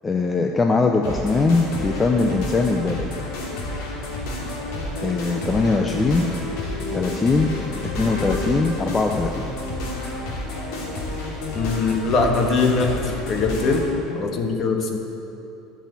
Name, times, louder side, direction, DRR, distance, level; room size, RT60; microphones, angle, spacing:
voice 1, 0.0-3.1 5.0-6.3 6.9-7.5 8.0-9.4, left 3 dB, 20° left, 3 dB, 0.6 m, -21 dB
sound 1, 1.0-14.0, left 1 dB, 80° left, 3.0 m, -30 dB
voice 2, 11.5-15.0, left 4 dB, 45° left, 3 dB, 1.5 m, -22 dB
10.5 x 6.3 x 8.5 m, 2.7 s
supercardioid pair, 120°, 0 cm